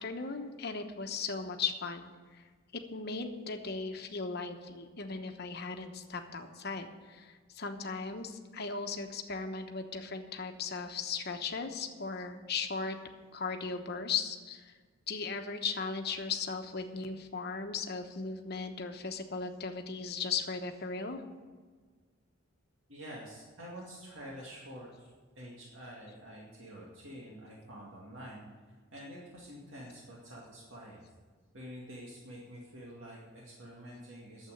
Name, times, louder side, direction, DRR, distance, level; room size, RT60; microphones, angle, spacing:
voice 1, 0.0-13.0 13.3-14.7 15.1-21.2, left 5 dB, 50° left, 6 dB, 1.0 m, -37 dB
voice 2, 22.9-24.9 25.4-28.4 28.9-31.0 31.5-34.5, equal, 70° right, -4 dB, 2.2 m, -47 dB
9.8 x 7.6 x 9.1 m, 1.5 s
head